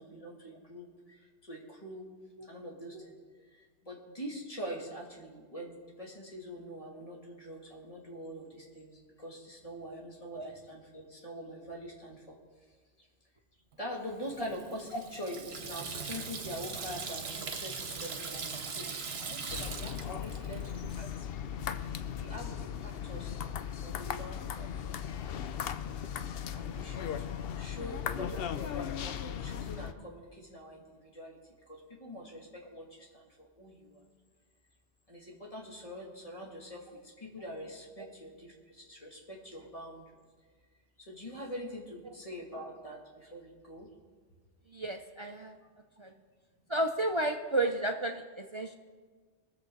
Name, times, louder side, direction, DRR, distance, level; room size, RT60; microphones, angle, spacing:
voice 1, 0.0-2.0 2.5-3.2 3.5-12.4 13.8-21.1 21.7-21.8 22.2-23.3 23.8-24.7 26.5-27.3 27.6-31.4 31.7-34.0 35.1-40.1 41.0-43.9, equal, 30° left, -3 dB, 2.4 m, -44 dB
Water tap faucet / Sink (filling or washing), 14.2-21.0, right 5 dB, 60° right, 1.2 m, -40 dB
sound 1, 19.5-29.9, left 8 dB, 65° left, 0.7 m, -37 dB
voice 2, 44.7-45.6 46.0-46.1 46.7-48.7, right 1 dB, 40° right, 4 dB, 0.4 m, -32 dB
21.5 x 7.3 x 3.9 m, 1.5 s
omnidirectional pair, 1.2 m